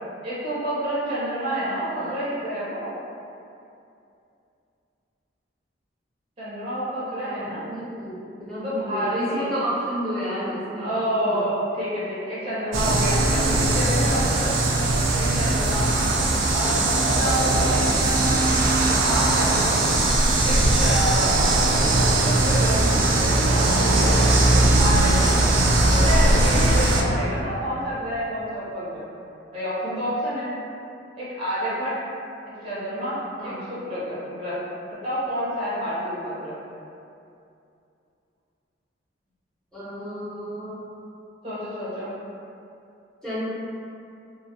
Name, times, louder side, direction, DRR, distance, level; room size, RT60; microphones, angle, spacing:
voice 1, 0.2-2.9 6.4-7.7 8.6-9.4 10.8-14.6 14.9-15.9 16.5-20.0 20.4-21.4 22.1-23.4 23.8-24.1 24.5-25.3 25.7-29.1 29.5-30.6 31.2-32.0 32.6-34.6 35.0-36.6 41.4-42.2, equal, 30° right, -10 dB, 0.6 m, -29 dB
voice 2, 7.2-11.4 17.5-18.0 18.7-19.1 27.0-27.4 33.4-33.7 39.7-40.9 43.2-43.5, equal, 5° left, -13 dB, 0.8 m, -32 dB
sound 1, 12.7-27.0, right 2 dB, 90° right, 0.3 m, -20 dB
2.3 x 2.2 x 2.6 m, 2.6 s
head